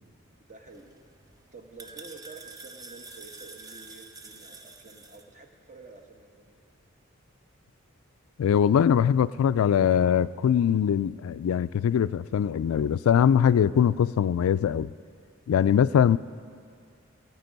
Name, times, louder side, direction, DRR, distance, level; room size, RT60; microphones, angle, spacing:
voice 1, 0.5-0.9 1.5-6.7, right 3 dB, 35° right, 3 dB, 1.1 m, -49 dB
sound 1, 0.7-5.2, right 3 dB, 15° right, 0.5 m, -47 dB
voice 2, 8.4-14.9 15.5-16.2, left 8 dB, 85° left, 17 dB, 0.3 m, -22 dB
18.0 x 8.3 x 5.3 m, 2.2 s
head